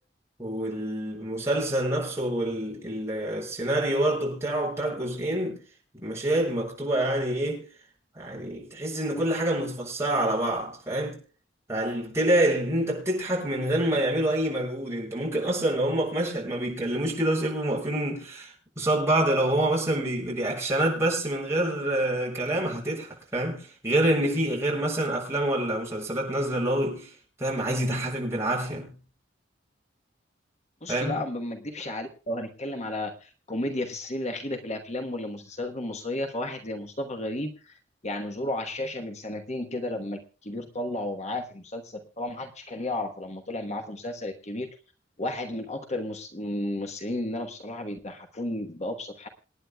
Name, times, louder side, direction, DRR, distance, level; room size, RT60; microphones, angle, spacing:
voice 1, 0.4-5.6 5.9-7.6 8.1-11.2 11.7-28.9 30.9-31.2, right 1 dB, 15° right, 7.4 m, -27 dB
voice 2, 30.8-37.8 38.0-44.7 45.2-49.3, left 1 dB, 40° left, 1.2 m, -33 dB
27.5 x 9.8 x 2.3 m
head